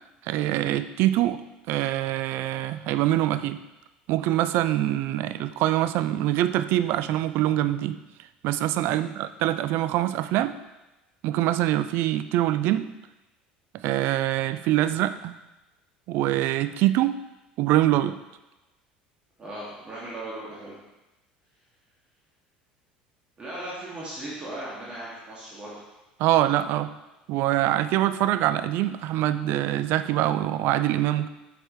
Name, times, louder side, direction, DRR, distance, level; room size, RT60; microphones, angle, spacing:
voice 1, 0.3-1.4 1.7-3.6 4.1-8.0 8.4-10.6 11.2-12.9 13.8-15.3 16.1-17.2 17.6-18.1 26.2-26.9 27.3-31.3, right 13 dB, 50° right, 12 dB, 0.4 m, -24 dB
voice 2, 19.4-20.8 23.4-25.8, right 1 dB, 25° right, -7 dB, 2.5 m, -37 dB
8.5 x 6.6 x 3.3 m, 1.0 s
figure-of-eight pair, 65°, 5 cm